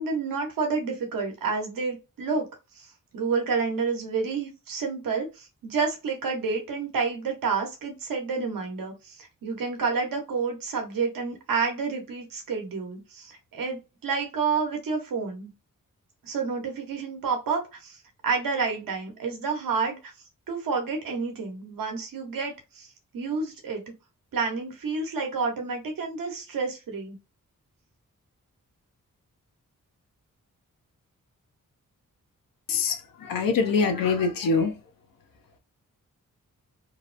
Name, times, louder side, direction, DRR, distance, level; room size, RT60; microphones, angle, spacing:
voice 1, 0.0-2.5 2.7-2.9 3.1-15.5 16.2-20.1 20.5-23.8 24.3-27.2, right 4 dB, 85° right, 0.9 m, -29 dB
voice 2, 32.7-34.8, left 4 dB, 90° left, 0.6 m, -24 dB
2.8 x 2.1 x 2.4 m
cardioid pair, 55°, 33 cm